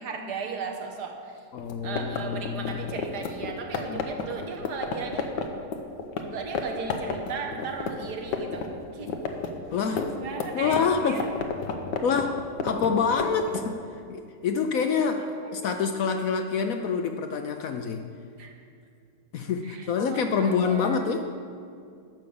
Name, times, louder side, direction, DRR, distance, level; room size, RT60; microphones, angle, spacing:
voice 1, 0.0-1.4 1.8-5.3 6.2-9.1 9.9-11.3 14.9-15.7 18.4-18.6 19.6-21.1, right 5 dB, 70° right, 3 dB, 1.6 m, -37 dB
voice 2, 1.5-2.8 3.9-4.0 9.7-10.2 10.5-11.2 12.0-12.4 12.6-15.2 15.5-18.1 19.3-21.3, left 6 dB, 65° left, 6 dB, 0.9 m, -26 dB
sound 1, 1.6-6.2 6.5-6.6 6.9-8.7 8.9-13.7, left 5 dB, 90° left, 1.5 m, -31 dB
10.5 x 6.4 x 7.1 m, 2.4 s
omnidirectional pair, 1.8 m